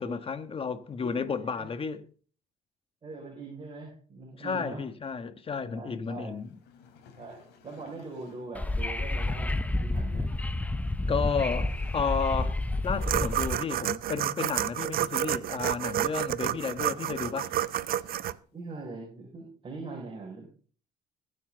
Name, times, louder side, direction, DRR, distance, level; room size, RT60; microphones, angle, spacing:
voice 1, 0.0-2.0 4.4-6.5 11.1-12.6 12.8-17.5, left 5 dB, 35° left, 1.4 m, -32 dB
voice 2, 1.0-1.7 3.0-4.8 5.7-6.3 7.2-10.3 16.8-16.9 18.5-20.5, right 3 dB, 30° right, 5.8 m, -42 dB
sound 1, 6.4-8.6 11.2-13.9 16.6-18.6, left 6 dB, 90° left, 3.1 m, -57 dB
Wind / Subway metro underground, 8.5-13.6, left 2 dB, 10° left, 0.7 m, -30 dB
sound 2, 13.0-18.3, right 12 dB, 60° right, 0.6 m, -30 dB
21.5 x 7.4 x 3.9 m
cardioid pair, 110°, 17 cm